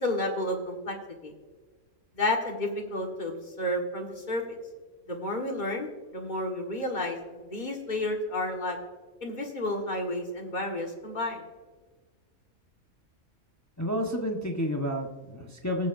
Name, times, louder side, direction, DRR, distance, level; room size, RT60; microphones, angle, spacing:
voice 1, 0.0-1.0 1.2-1.3 2.1-4.6 5.1-8.8 9.2-11.5, left 1 dB, 35° left, 1 dB, 1.7 m, -31 dB
voice 2, 13.8-15.9, equal, 15° left, 1 dB, 1.0 m, -30 dB
19.0 x 7.5 x 2.6 m, 1.4 s
omnidirectional pair, 1.5 m